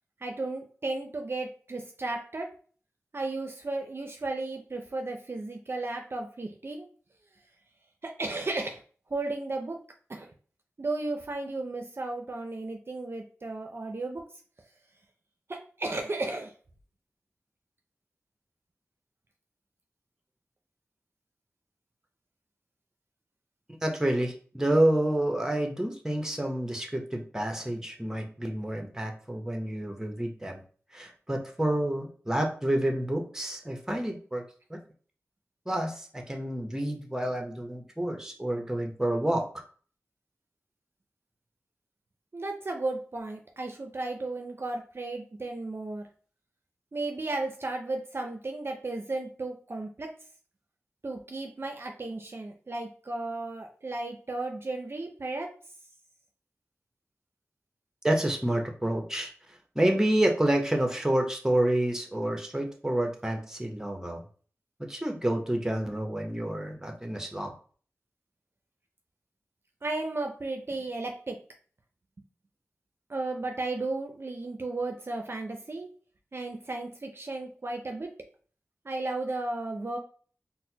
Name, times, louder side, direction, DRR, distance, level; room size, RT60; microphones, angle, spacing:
voice 1, 0.2-2.5 3.1-6.9 8.0-8.8 9.1-9.8 10.1-10.3 10.8-14.2 15.5-16.5 42.3-46.1 46.9-50.1 51.0-55.5 69.8-71.4 73.1-75.9 76.3-78.1 78.8-80.0, right 2 dB, 50° right, 3 dB, 0.5 m, -34 dB
voice 2, 23.8-30.6 30.9-34.4 34.7-34.8 35.7-39.4 58.0-59.3 59.7-64.2 64.9-67.5, right 1 dB, 10° right, 3 dB, 0.7 m, -28 dB
4.1 x 2.0 x 2.7 m, 0.43 s
wide cardioid pair, 50°, 5 cm